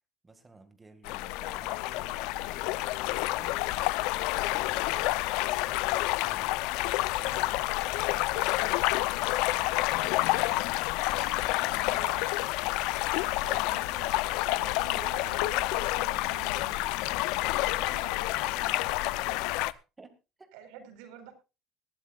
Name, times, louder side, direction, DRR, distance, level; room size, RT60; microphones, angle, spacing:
voice 1, 0.2-3.6 4.4-6.6 7.1-10.6 11.2-12.2 19.6-20.5, right 3 dB, 10° right, 7 dB, 1.9 m, -53 dB
sound 1, 1.0-19.7, left 19 dB, 70° left, 0.6 m, -29 dB
sound 2, 9.0-16.0, left 4 dB, 30° left, 7.8 m, -53 dB
voice 2, 11.1-12.3 13.4-16.8 17.6-19.4 20.5-21.3, right 8 dB, 85° right, 6 dB, 4.3 m, -48 dB
20.0 x 13.0 x 2.4 m, 0.29 s
cardioid pair, 170°, 0 cm